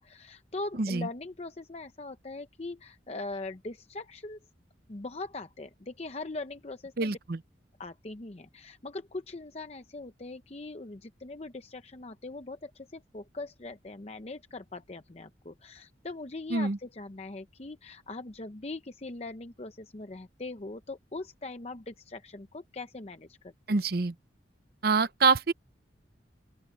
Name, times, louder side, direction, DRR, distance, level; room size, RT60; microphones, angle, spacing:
voice 1, 0.0-4.4 4.9-7.1 7.8-23.5, left 2 dB, 35° left, 0.7 m, -41 dB
voice 2, 0.8-1.1 7.0-7.4 16.5-16.8 23.7-24.1 24.8-25.5, right 4 dB, 55° right, 0.7 m, -26 dB
open air
head